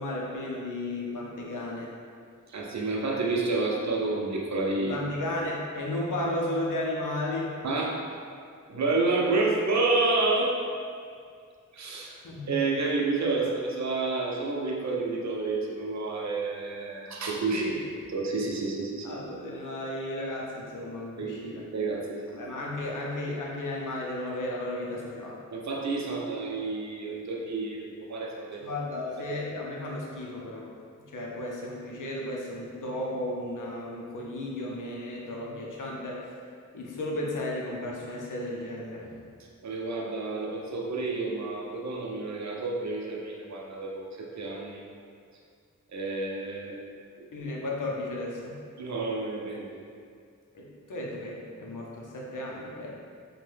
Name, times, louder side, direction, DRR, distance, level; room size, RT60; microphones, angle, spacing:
voice 1, 0.0-1.9 4.8-7.6 12.0-12.6 17.5-17.8 19.0-21.7 22.3-25.4 28.6-30.7 31.0-36.3 36.7-39.2 47.3-48.6 50.5-52.9, left 1 dB, 80° left, -3 dB, 0.5 m, -34 dB
voice 2, 2.5-5.0 7.6-8.0 8.7-10.5 11.7-12.1 12.5-17.6 18.1-19.1 21.2-22.5 25.5-28.7 39.6-44.8 45.9-46.8 48.8-49.8, right 3 dB, 60° right, -1 dB, 0.5 m, -29 dB
2.6 x 2.1 x 3.3 m, 2.2 s
wide cardioid pair, 60°, 31 cm